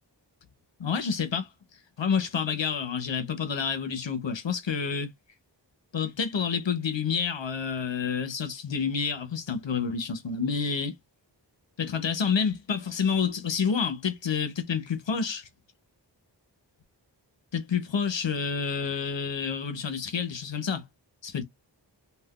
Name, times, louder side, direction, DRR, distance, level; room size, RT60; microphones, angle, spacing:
voice 1, 0.8-1.5 2.0-5.1 5.9-10.9 11.8-15.5 17.5-20.8 21.2-21.4, left 6 dB, 80° left, 0.8 m, -29 dB
3.6 x 2.4 x 2.3 m
wide cardioid pair, 45°, 44 cm